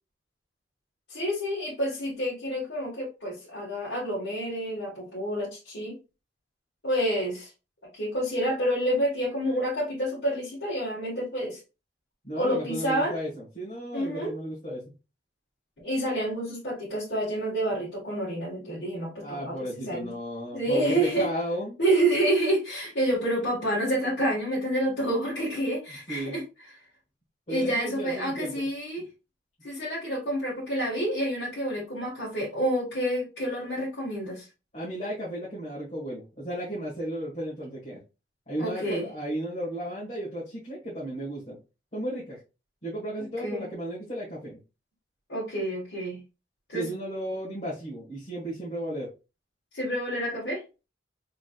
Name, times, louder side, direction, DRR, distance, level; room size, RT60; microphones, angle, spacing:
voice 1, 1.1-5.9 6.8-7.5 7.9-11.6 12.3-13.1 13.9-14.3 15.8-19.5 19.8-20.1 20.5-21.3 21.8-26.4 27.5-29.0 29.6-34.4 38.6-39.0 43.4-43.6 45.3-46.2 46.7-46.8 49.7-50.6, right 1 dB, 60° left, -7 dB, 1.7 m, -28 dB
voice 2, 12.2-14.8 19.2-21.8 26.1-26.4 27.5-28.7 34.7-38.0 38.5-41.6 41.9-42.4 42.8-44.6 46.7-49.1, right 1 dB, 35° left, -9 dB, 1.7 m, -34 dB
3.9 x 3.8 x 2.4 m, 0.29 s
head